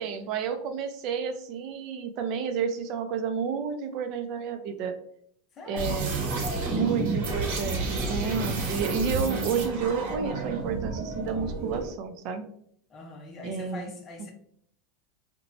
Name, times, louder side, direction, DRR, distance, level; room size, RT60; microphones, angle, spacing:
voice 1, 0.0-5.0 5.7-6.1 6.7-12.4 13.4-13.8, right 6 dB, 50° right, 8 dB, 0.4 m, -30 dB
voice 2, 5.5-5.9 12.9-14.3, left 2 dB, 30° left, 2 dB, 0.7 m, -42 dB
sound 1, 5.8-11.9, right 3 dB, 75° right, 0.8 m, -30 dB
2.8 x 2.1 x 2.6 m, 0.66 s
supercardioid pair, 140°, 0 cm